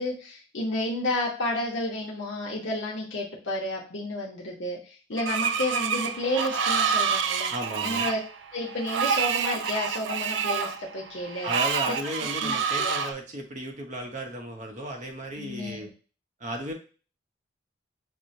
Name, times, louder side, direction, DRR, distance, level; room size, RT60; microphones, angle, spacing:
voice 1, 0.0-7.5 7.8-8.2 8.5-11.5 11.9-12.0 12.4-13.0 15.4-15.9, left 1 dB, 70° left, -4 dB, 0.8 m, -31 dB
Screech, 5.2-13.1, right 6 dB, 70° right, 0.4 m, -28 dB
voice 2, 7.5-8.1 11.4-15.9 16.4-16.7, right 1 dB, 40° right, 3 dB, 0.7 m, -34 dB
6.1 x 2.1 x 2.6 m, 0.37 s
head